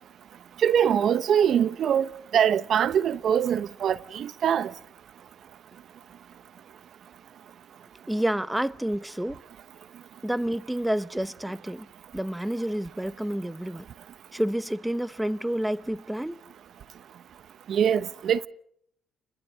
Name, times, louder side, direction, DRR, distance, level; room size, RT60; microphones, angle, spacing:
voice 1, 0.6-2.1 2.3-4.7 17.7-18.5, right 8 dB, 65° right, 0.8 m, -23 dB
voice 2, 8.1-9.4 10.2-11.9 12.1-13.8 14.3-16.4, right 1 dB, 5° right, 0.9 m, -29 dB
29.0 x 22.0 x 5.1 m
cardioid pair, 90°, 0 cm